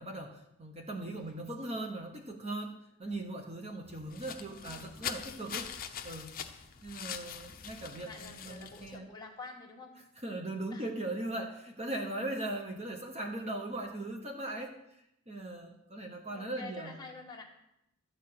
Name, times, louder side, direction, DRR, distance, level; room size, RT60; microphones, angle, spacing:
voice 1, 0.0-5.7 6.0-6.3 6.8-9.1 10.2-14.8 15.3-17.0, right 2 dB, 30° right, 3 dB, 1.0 m, -39 dB
voice 2, 1.2-1.6 4.4-5.6 8.0-9.9 10.7-10.9 16.3-17.5, left 3 dB, 20° left, -1 dB, 1.5 m, -49 dB
sound 1, 3.8-9.0, left 8 dB, 40° left, 0.7 m, -43 dB
12.5 x 4.8 x 8.5 m, 0.82 s
head